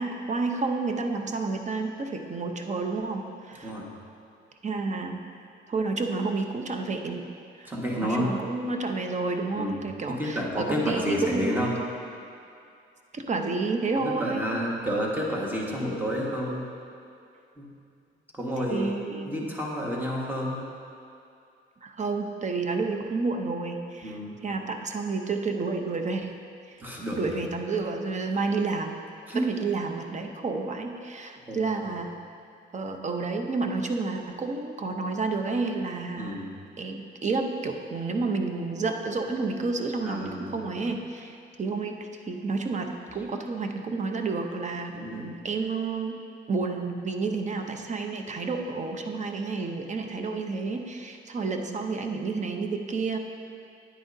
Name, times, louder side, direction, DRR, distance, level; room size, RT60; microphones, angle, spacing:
voice 1, 0.0-3.7 4.6-5.2 5.7-7.2 7.6-7.7 8.0-11.7 13.1-14.4 18.7-19.3 21.8-26.3 27.2-29.0 29.3-32.1 32.7-36.4 36.8-42.0 42.2-46.2 46.5-53.2, right 3 dB, 35° right, 4 dB, 0.8 m, -30 dB
voice 2, 7.7-8.3 9.5-9.8 10.1-11.7 14.0-16.6 17.6-17.7 18.4-18.9 19.2-20.6 24.0-24.4 26.8-27.3 29.3-29.5 31.5-31.6 36.2-36.5 40.0-40.7 43.1-43.2 44.9-45.2, equal, 10° right, -3 dB, 1.6 m, -30 dB
9.9 x 8.8 x 2.7 m, 2.5 s
cardioid pair, 90°, 20 cm